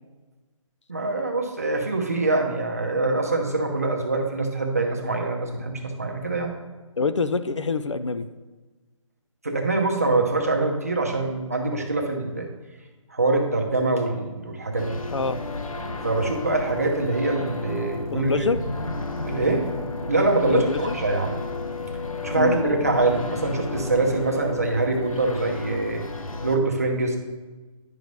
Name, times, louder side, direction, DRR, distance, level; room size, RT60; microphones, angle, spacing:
voice 1, 0.9-6.5 9.4-12.5 13.1-15.0 16.0-18.3 19.3-19.6 20.1-21.4 22.2-26.0 26.4-27.2, right 2 dB, 25° right, 1 dB, 0.6 m, -24 dB
voice 2, 7.0-8.3 15.1-15.4 18.1-18.6 20.5-21.0 22.3-22.6, left 4 dB, 60° left, 12 dB, 0.4 m, -25 dB
sound 1, 14.8-26.6, left 3 dB, 80° left, 0.9 m, -32 dB
10.5 x 5.3 x 3.1 m, 1.2 s
hypercardioid pair, 180°, 18 cm